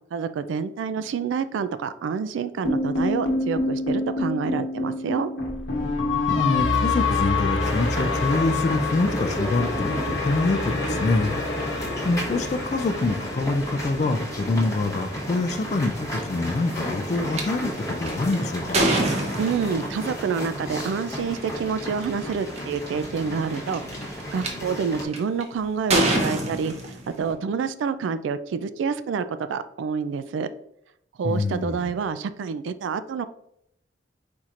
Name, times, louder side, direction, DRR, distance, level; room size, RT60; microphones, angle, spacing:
voice 1, 0.1-5.3 19.4-30.5 31.2-33.3, right 6 dB, 75° right, 12 dB, 0.3 m, -28 dB
sound 1, 2.7-14.9, left 3 dB, 75° left, 0.9 m, -27 dB
voice 2, 6.3-11.3 11.6-18.8 31.2-31.9, left 3 dB, 35° left, 6 dB, 0.3 m, -25 dB
sound 2, 7.6-25.0, equal, 15° left, 0.9 m, -33 dB
sound 3, 17.3-17.4 18.1-19.9 21.2-21.4 22.0-22.1 22.3-22.8 23.5-24.5 25.1-25.4 25.9-27.3, right 2 dB, 35° right, 0.7 m, -24 dB
4.5 x 4.2 x 2.5 m, 0.75 s
head